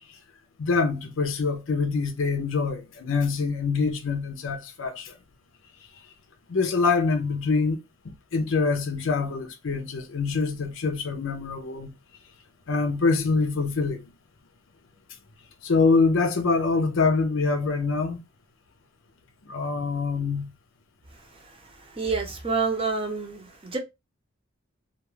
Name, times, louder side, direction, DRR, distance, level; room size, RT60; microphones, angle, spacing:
voice 1, 0.6-5.1 6.5-7.8 8.0-11.9 12.7-14.1 15.6-18.2 19.5-20.5, left 4 dB, 75° left, 0.6 m, -25 dB
voice 2, 21.1-23.8, right 4 dB, 30° right, 0.6 m, -29 dB
2.4 x 2.3 x 3.0 m
head